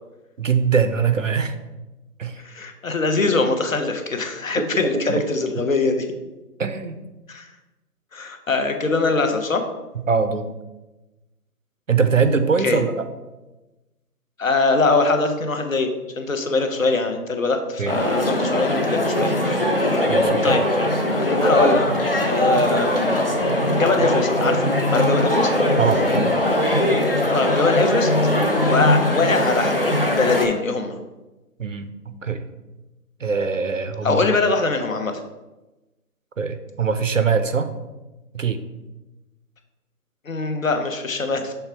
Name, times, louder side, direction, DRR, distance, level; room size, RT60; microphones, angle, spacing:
voice 1, 0.4-1.5 2.2-2.4 4.6-5.2 5.6-5.7 6.6-7.0 10.1-10.5 11.9-13.1 17.8-18.0 20.1-20.6 25.8-26.0 31.6-32.5 33.2-34.3 36.4-37.7 38.3-38.6, right 5 dB, 55° right, 9 dB, 0.5 m, -22 dB
voice 2, 2.4-6.1 7.3-7.5 8.1-9.6 12.6-12.8 14.4-19.8 20.4-20.6 21.1-21.8 22.2-23.2 23.7-25.5 27.3-28.1 28.7-31.0 34.0-35.2 40.2-41.5, left 3 dB, 55° left, 6 dB, 0.9 m, -22 dB
sound 1, 17.9-30.5, left 1 dB, 40° left, 0.5 m, -20 dB
6.6 x 3.4 x 4.5 m, 1.1 s
figure-of-eight pair, 160°, 47 cm